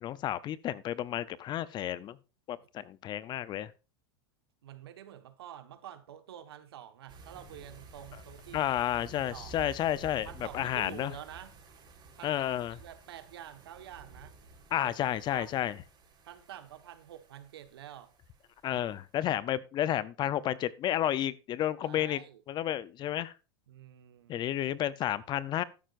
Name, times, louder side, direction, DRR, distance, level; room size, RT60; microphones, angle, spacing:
voice 1, 0.0-2.2 2.5-3.7 8.5-10.3 10.5-11.1 12.2-12.8 14.7-15.7 18.6-22.2 22.5-23.3 24.3-25.6, left 12 dB, 35° left, 0.6 m, -31 dB
voice 2, 2.6-2.9 4.6-8.7 9.1-9.7 10.2-11.6 12.2-12.5 12.8-14.3 14.8-15.5 16.2-18.1 18.7-18.9 21.8-22.4 23.7-24.4, right 11 dB, 85° right, 1.4 m, -48 dB
sound 1, 7.1-19.0, right 3 dB, 35° right, 3.8 m, -52 dB
12.5 x 10.0 x 2.6 m
hypercardioid pair, 110°, 13 cm